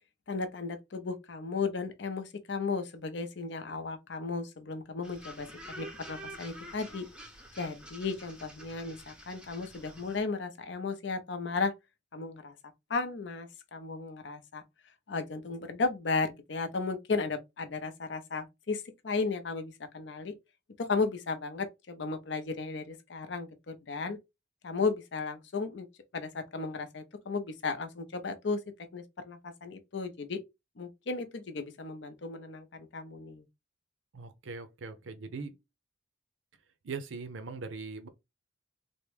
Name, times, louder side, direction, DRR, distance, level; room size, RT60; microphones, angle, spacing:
voice 1, 0.3-7.1 7.6-11.7 12.1-12.6 12.9-14.6 15.1-20.4 20.8-24.2 24.6-25.9 26.1-28.6 28.9-30.4 30.8-33.4, left 4 dB, 65° left, 0.5 m, -35 dB
sound 1, 5.0-10.2, right 1 dB, 5° right, 0.5 m, -48 dB
voice 2, 34.1-35.5 36.8-38.1, right 4 dB, 75° right, 0.5 m, -40 dB
3.4 x 2.1 x 3.1 m
head